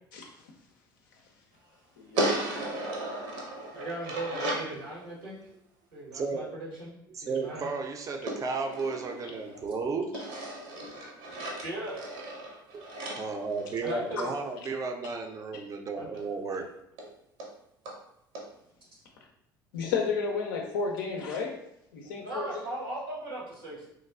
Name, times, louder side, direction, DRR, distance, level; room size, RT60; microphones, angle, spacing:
voice 1, 2.0-2.4 19.7-21.6 21.9-22.5, left 5 dB, 70° left, 0 dB, 0.4 m, -32 dB
sound 1, 2.2-4.7 8.3-9.7 10.1-14.3 16.2-16.3 16.5-16.6 17.0-17.1 17.4-17.5 17.9-18.0 18.3-18.5, right 1 dB, 60° right, 0.7 m, -35 dB
voice 2, 3.7-5.4 5.9-6.9 7.2-7.7 11.6-12.2 13.8-14.3 15.9-16.3 22.2-23.9, right 2 dB, 85° right, -6 dB, 1.0 m, -38 dB
voice 3, 6.1-6.6 7.2-10.1 11.4-11.5 12.7-12.9 13.1-16.7 17.0-17.1, right 4 dB, 30° right, 4 dB, 0.4 m, -33 dB
3.0 x 2.3 x 2.3 m, 0.77 s
figure-of-eight pair, 65°, 11 cm